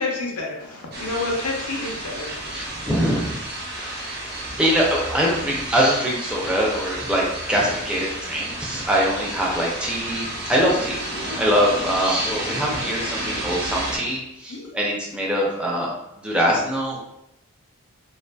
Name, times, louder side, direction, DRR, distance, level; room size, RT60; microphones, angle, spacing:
voice 1, 0.0-2.3 14.5-14.7, left 3 dB, 85° left, -1 dB, 0.7 m, -28 dB
sound 1, 0.9-14.0, right 1 dB, 45° right, 0.7 m, -31 dB
voice 2, 2.5-3.4 3.7-4.1 4.6-11.0 11.4-15.9 16.2-17.0, equal, 5° right, -4 dB, 0.4 m, -23 dB
2.6 x 2.5 x 2.2 m, 0.84 s
head